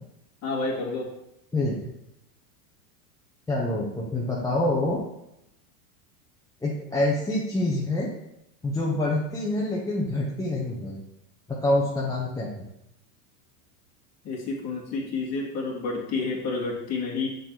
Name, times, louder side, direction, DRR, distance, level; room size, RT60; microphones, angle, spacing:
voice 1, 0.4-1.1 14.2-17.3, left 3 dB, 35° left, -2 dB, 2.1 m, -29 dB
voice 2, 3.5-5.0 6.6-8.1 8.6-11.0 11.5-12.7, left 1 dB, 5° left, -4 dB, 0.7 m, -26 dB
6.6 x 4.0 x 4.6 m, 0.84 s
supercardioid pair, 130°, 48 cm